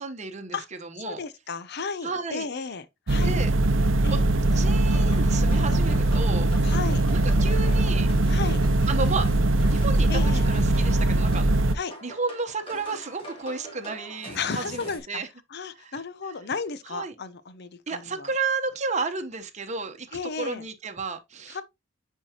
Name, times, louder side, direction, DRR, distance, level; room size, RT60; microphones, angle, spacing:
voice 1, 0.0-1.2 2.0-2.5 3.2-3.5 4.1-4.2 4.5-6.5 7.1-8.1 8.9-9.3 9.7-10.2 10.5-11.5 12.0-15.3 15.8-15.9 16.9-17.1 17.9-21.6, right 4 dB, 35° right, 1.1 m, -32 dB
voice 2, 1.0-3.3 4.0-4.2 5.5-5.8 6.6-7.0 8.3-8.6 10.1-10.5 11.7-11.9 14.3-15.2 15.5-18.3 20.1-20.6 21.5-21.6, left 5 dB, 55° left, 0.7 m, -34 dB
sound 1, 3.1-11.8, right 2 dB, 75° right, 0.7 m, -21 dB
sound 2, 4.5-15.0, left 1 dB, 30° left, 2.8 m, -42 dB
9.6 x 4.7 x 2.9 m
head